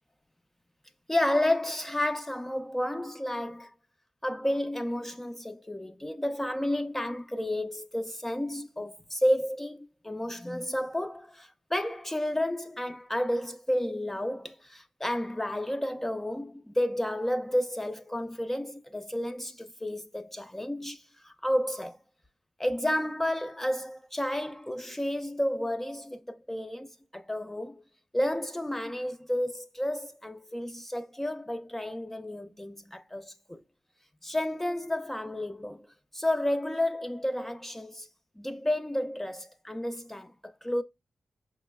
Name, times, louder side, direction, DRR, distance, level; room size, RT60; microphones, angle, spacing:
voice 1, 1.1-3.7 4.2-22.0 22.6-27.8 28.1-33.6 34.2-35.9 36.1-38.1 38.4-40.8, left 1 dB, 10° left, 0.4 m, -31 dB
4.7 x 3.0 x 2.2 m
cardioid pair, 65°, 2 cm